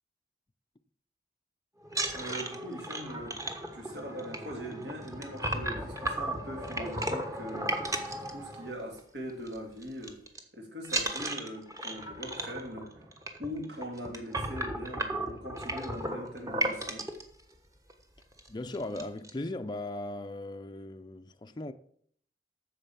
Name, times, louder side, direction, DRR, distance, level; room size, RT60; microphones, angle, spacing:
sound 1, 1.8-9.0 9.3-9.6 9.8-10.4 10.8-17.2 17.9-18.0 18.3-18.5 18.7-19.3, right 1 dB, 20° right, 1.2 m, -35 dB
voice 1, 2.1-3.4 3.7-10.2 10.5-12.9 13.4-17.1, equal, 70° right, 2.8 m, -41 dB
voice 2, 18.5-21.7, left 2 dB, 25° left, 0.5 m, -38 dB
9.0 x 6.8 x 7.1 m
head